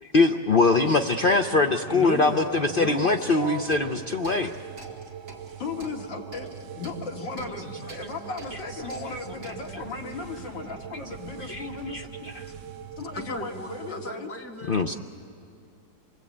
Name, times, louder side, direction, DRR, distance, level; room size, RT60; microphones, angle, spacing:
voice 1, 0.0-4.5 9.1-9.2 11.4-12.4 14.7-14.9, left 3 dB, 65° left, 5 dB, 0.5 m, -23 dB
sound 1, 0.6-14.1, right 10 dB, 85° right, 1.5 m, -43 dB
voice 2, 1.8-4.1 7.2-7.3 8.9-9.0 13.1-14.9, equal, 10° left, 4 dB, 1.3 m, -36 dB
sound 2, 3.6-9.7, right 3 dB, 45° right, 2.5 m, -46 dB
voice 3, 5.6-12.3 13.0-14.3, left 4 dB, 90° left, 1 dB, 2.9 m, -36 dB
sound 3, 8.4-13.4, right 2 dB, 10° right, 6.1 m, -50 dB
27.0 x 21.5 x 8.6 m, 2.5 s
omnidirectional pair, 1.9 m